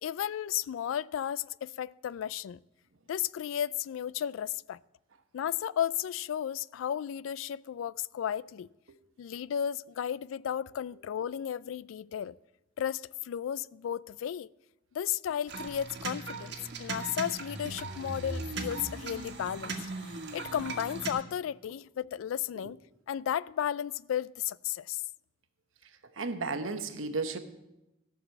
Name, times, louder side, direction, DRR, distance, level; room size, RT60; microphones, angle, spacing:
voice 1, 0.0-2.6 3.1-4.8 5.3-8.7 9.2-12.4 12.8-14.5 14.9-22.8 23.1-25.0, left 9 dB, 90° left, 0.3 m, -34 dB
sound 1, 15.5-21.1, right 3 dB, 60° right, 1.5 m, -38 dB
voice 2, 26.2-27.4, right 3 dB, 90° right, 1.0 m, -33 dB
14.5 x 6.2 x 7.1 m
head